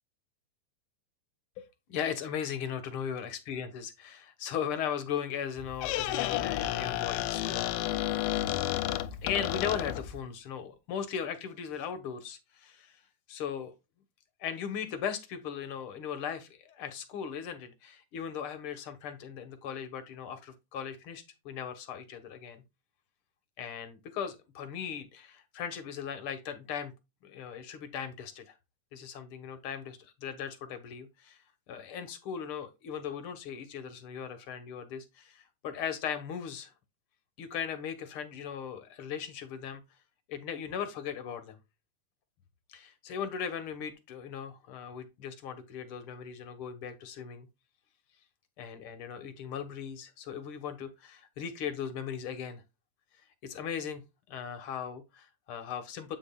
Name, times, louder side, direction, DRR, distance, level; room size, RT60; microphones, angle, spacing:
voice 1, 1.6-7.7 9.2-13.0 13.3-13.7 14.4-22.6 23.6-26.9 27.2-28.6 28.9-31.4 31.7-36.7 37.4-39.8 40.3-41.6 42.7-47.5 48.6-52.6 53.4-54.0 54.3-56.2, left 8 dB, 65° left, 1.4 m, -38 dB
Squeak, 5.6-10.2, left 13 dB, 90° left, 2.2 m, -31 dB
8.5 x 6.2 x 2.3 m
omnidirectional pair, 3.8 m